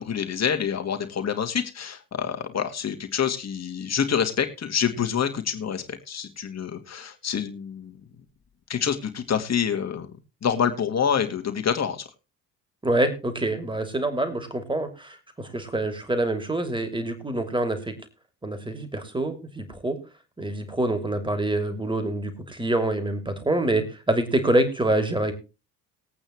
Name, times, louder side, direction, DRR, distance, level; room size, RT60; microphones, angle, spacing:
voice 1, 0.0-8.0 8.7-10.1 10.4-12.0, left 7 dB, 30° left, 5 dB, 2.2 m, -27 dB
voice 2, 12.8-17.9 18.4-20.0 20.4-25.3, right 1 dB, 10° right, 8 dB, 2.9 m, -26 dB
20.0 x 8.7 x 3.1 m, 0.29 s
figure-of-eight pair, 55°, 49 cm